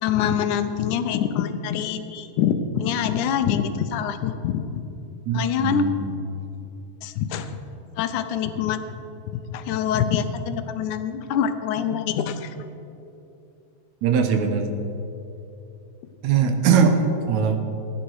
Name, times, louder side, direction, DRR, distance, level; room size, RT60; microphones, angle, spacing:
voice 1, 0.0-4.8 5.3-5.9 7.0-7.5 8.0-8.8 9.3-12.5, left 8 dB, 85° left, 10 dB, 2.2 m, -25 dB
voice 2, 5.3-6.2 14.0-14.7 16.2-17.6, right 6 dB, 75° right, 7 dB, 2.2 m, -21 dB
15.0 x 11.0 x 4.7 m, 2.9 s
omnidirectional pair, 3.4 m